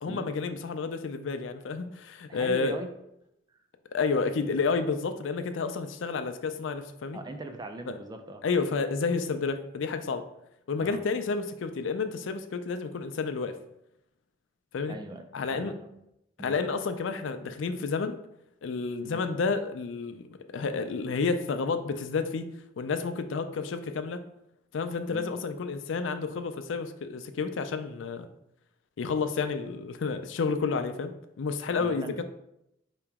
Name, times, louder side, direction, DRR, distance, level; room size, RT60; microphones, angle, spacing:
voice 1, 0.0-2.8 3.9-7.2 7.9-8.0 8.4-10.2 10.7-13.6 14.7-15.0 15.3-15.7 16.4-18.2 18.6-20.3 20.5-22.5 22.8-24.2 24.7-28.3 29.0-32.2, left 4 dB, 80° left, 9 dB, 0.4 m, -30 dB
voice 2, 2.3-2.9 7.1-8.4 10.8-11.0 14.9-16.0 16.4-16.6 19.0-19.3 25.1-25.3 31.7-32.2, right 1 dB, 20° right, 6 dB, 0.4 m, -40 dB
4.8 x 3.0 x 3.5 m, 0.80 s
head